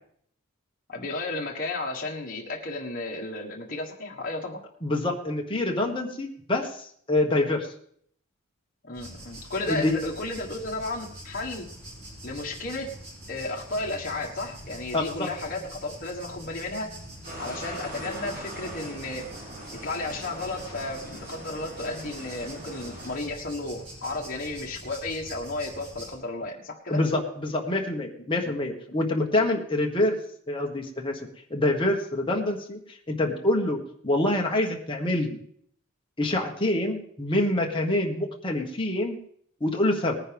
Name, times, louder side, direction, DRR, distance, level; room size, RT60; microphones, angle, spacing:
voice 1, 0.9-4.6 8.8-11.7 12.2-12.9 13.3-16.9 17.4-19.2 19.8-27.0 28.4-28.5, left 2 dB, 45° left, -1 dB, 1.6 m, -33 dB
voice 2, 4.8-7.7 9.7-10.0 14.9-15.3 26.9-30.2 30.5-31.2 31.5-35.4 36.2-39.2 39.6-40.2, left 1 dB, 25° left, 0 dB, 1.5 m, -26 dB
sound 1, 8.9-26.1, right 1 dB, 85° right, 5.1 m, -44 dB
sound 2, 17.2-23.2, right 1 dB, 40° right, 3.7 m, -41 dB
19.5 x 9.9 x 3.5 m, 0.64 s
head